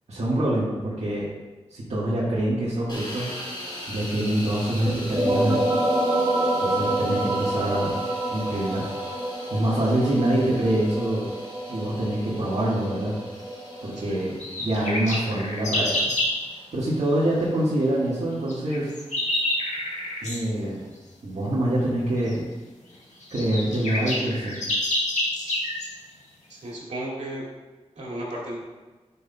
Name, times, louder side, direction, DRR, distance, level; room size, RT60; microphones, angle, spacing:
voice 1, 0.1-1.2 1.7-3.3 3.9-5.7 6.6-8.0 8.3-8.9 9.5-11.3 11.7-13.1 13.8-14.3 14.6-16.0 16.7-18.9 20.2-20.8 21.2-22.5 23.3-24.6, right 1 dB, 70° right, -9 dB, 1.5 m, -25 dB
sound 1, 2.9-20.8, left 1 dB, 45° left, 2.3 m, -42 dB
sound 2, 4.9-14.2, right 1 dB, 20° right, 0.9 m, -28 dB
sound 3, 14.4-16.4 18.5-20.4 22.3-22.4 22.9-23.0 23.2-25.9, left 1 dB, 85° left, 1.4 m, -27 dB
voice 2, 26.5-27.4 28.0-28.6, right 1 dB, 85° right, -5 dB, 2.2 m, -34 dB
10.5 x 5.7 x 2.2 m, 1.2 s
wide cardioid pair, 110°, 12 cm